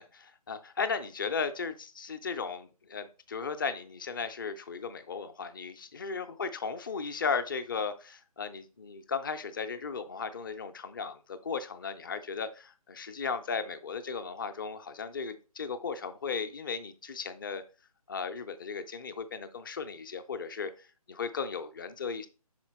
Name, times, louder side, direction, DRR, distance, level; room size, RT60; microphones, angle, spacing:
voice 1, 0.0-17.6 18.1-22.3, left 5 dB, 35° left, 9 dB, 0.6 m, -36 dB
5.7 x 4.4 x 4.2 m, 0.33 s
figure-of-eight pair, 150°, 20 cm